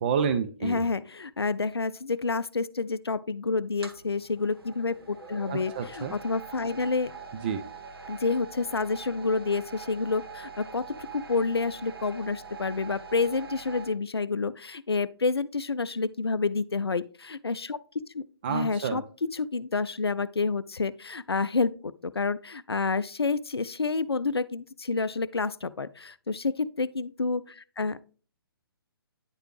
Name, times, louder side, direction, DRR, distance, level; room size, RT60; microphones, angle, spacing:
voice 1, 0.0-0.8 5.5-6.1 7.4-7.6 18.4-19.0, right 7 dB, 25° right, 0.3 m, -29 dB
voice 2, 0.6-7.1 8.1-28.0, left 4 dB, 80° left, 0.4 m, -29 dB
sound 1, 3.7-13.9, right 5 dB, 70° right, 1.3 m, -44 dB
9.5 x 4.8 x 3.1 m
figure-of-eight pair, 130°, 13 cm